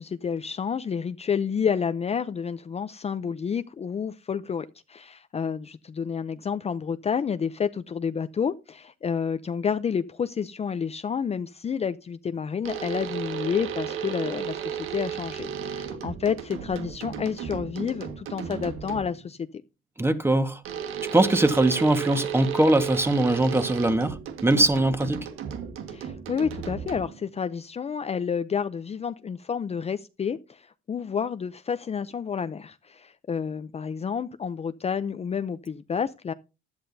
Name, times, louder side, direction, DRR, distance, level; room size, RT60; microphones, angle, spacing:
voice 1, 0.0-19.6 25.9-36.3, left 6 dB, 30° left, 0.6 m, -30 dB
sound 1, 12.6-19.3 20.6-27.3, right 8 dB, 80° right, 1.7 m, -34 dB
voice 2, 20.0-20.6 21.1-25.2, right 2 dB, 10° right, 1.5 m, -21 dB
15.5 x 11.5 x 2.7 m
cardioid pair, 110°, 21 cm